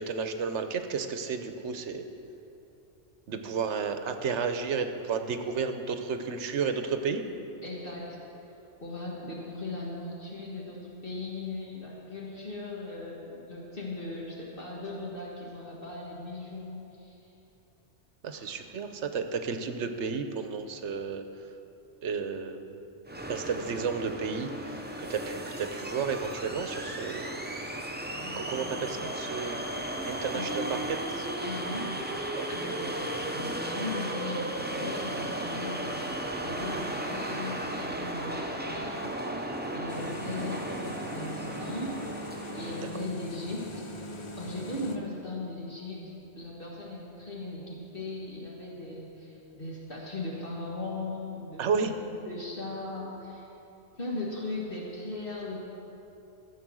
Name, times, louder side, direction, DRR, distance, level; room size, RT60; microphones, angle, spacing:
voice 1, 0.0-2.0 3.3-7.2 18.2-21.2 22.0-22.8 23.3-27.6 28.4-29.8 30.0-30.8 31.2-31.3 32.3-32.5 42.8-42.9 51.6-51.9, right 5 dB, 75° right, 8 dB, 1.1 m, -32 dB
voice 2, 7.6-8.2 8.8-17.2 18.3-18.5 28.2-28.4 30.3-30.8 31.4-32.0 32.5-36.1 36.4-42.1 42.5-51.9 52.3-53.5 54.0-55.6, left 2 dB, 50° left, -4 dB, 1.8 m, -38 dB
sound 1, 23.1-42.9, right 1 dB, 10° right, 0.6 m, -35 dB
sound 2, 39.9-45.0, left 1 dB, 30° left, 0.7 m, -41 dB
14.5 x 7.5 x 6.2 m, 2.9 s
omnidirectional pair, 1.2 m